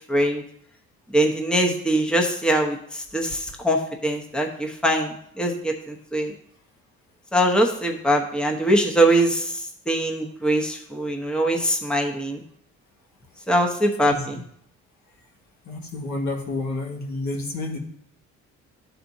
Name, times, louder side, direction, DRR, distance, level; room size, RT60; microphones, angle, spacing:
voice 1, 0.1-0.4 1.1-6.3 7.3-12.4 13.5-14.4, right 1 dB, 5° left, 2 dB, 1.0 m, -22 dB
voice 2, 15.7-17.8, left 2 dB, 70° left, 0 dB, 1.8 m, -29 dB
12.5 x 4.2 x 2.7 m, 0.70 s
cardioid pair, 90°, 30 cm